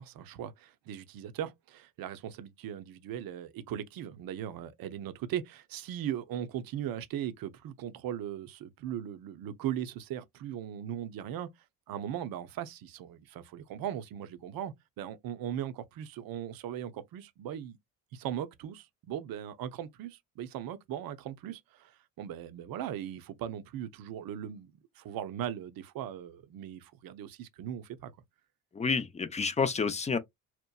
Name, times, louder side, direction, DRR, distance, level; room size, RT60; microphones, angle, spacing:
voice 1, 0.0-11.5 11.9-17.8 18.1-28.1, right 10 dB, 55° right, 0.6 m, -39 dB
voice 2, 28.8-30.2, left 5 dB, 15° left, 0.4 m, -29 dB
2.8 x 2.1 x 2.2 m
supercardioid pair, 65°, 42 cm